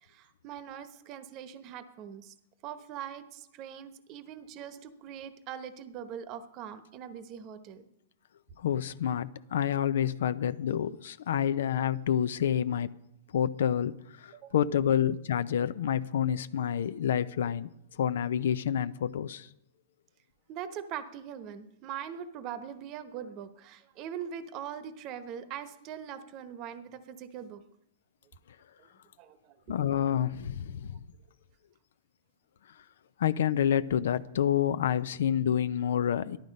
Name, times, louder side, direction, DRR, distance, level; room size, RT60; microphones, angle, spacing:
voice 1, 0.0-2.3 2.6-7.9 14.3-14.5 20.5-27.6 28.8-28.9 29.2-29.5, right 9 dB, 40° right, 1.0 m, -42 dB
voice 2, 8.6-12.9 13.3-17.7 18.0-19.5 29.7-31.0 33.2-36.4, left 9 dB, 75° left, 0.6 m, -28 dB
14.0 x 11.5 x 5.3 m
hypercardioid pair, 130°, 0 cm